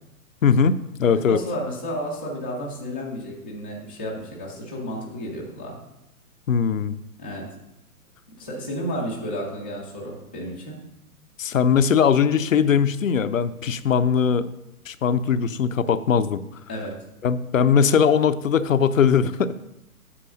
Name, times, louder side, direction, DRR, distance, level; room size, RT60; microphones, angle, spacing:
voice 1, 0.4-0.7 1.0-1.4 6.5-6.9 11.4-14.5 14.9-16.4 17.2-19.5, left 7 dB, 60° left, 12 dB, 0.6 m, -20 dB
voice 2, 1.3-5.8 7.2-7.5 8.4-10.8 16.7-17.0, equal, 10° left, -8 dB, 0.4 m, -32 dB
8.6 x 4.8 x 6.3 m, 0.86 s
figure-of-eight pair, 120°, 45 cm